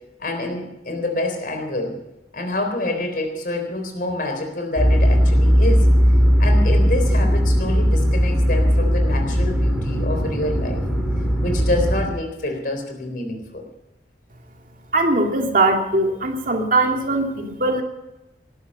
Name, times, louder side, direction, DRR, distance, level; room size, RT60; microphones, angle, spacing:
voice 1, 0.2-2.0 2.3-5.9 6.4-10.8 11.4-13.6, left 2 dB, 50° left, 5 dB, 3.8 m, -27 dB
sound 1, 4.8-12.1, equal, ahead, 3.3 m, -18 dB
voice 2, 14.9-17.8, right 2 dB, 50° right, 3 dB, 2.4 m, -20 dB
19.0 x 12.0 x 5.6 m, 0.94 s
head